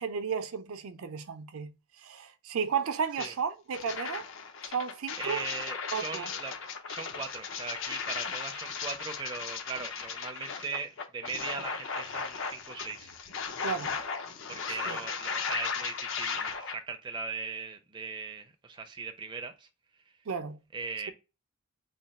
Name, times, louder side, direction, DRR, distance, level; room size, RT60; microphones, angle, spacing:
voice 1, 0.0-1.7 2.0-4.2 4.7-5.4 5.9-6.3 13.6-14.0 14.9-15.0 20.3-20.6, right 6 dB, 80° right, 0.5 m, -33 dB
sound 1, 3.2-3.3 3.7-16.8, left 6 dB, 65° left, 0.5 m, -36 dB
voice 2, 5.2-13.1 14.5-19.7 20.7-21.1, right 4 dB, 20° right, 0.4 m, -39 dB
3.2 x 2.2 x 4.0 m
head